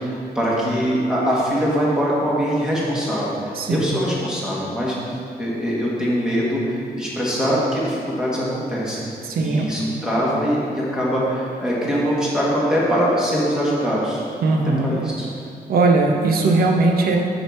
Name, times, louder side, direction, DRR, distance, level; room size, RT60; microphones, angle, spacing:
voice 1, 0.0-4.9 5.4-9.0 9.4-14.2 14.8-15.3, equal, 5° right, -6 dB, 1.5 m, -22 dB
voice 2, 3.5-4.0 9.2-9.6 14.4-14.9 15.7-17.2, right 3 dB, 75° right, 1 dB, 0.9 m, -19 dB
6.4 x 6.3 x 4.6 m, 2.4 s
wide cardioid pair, 175°, 16 cm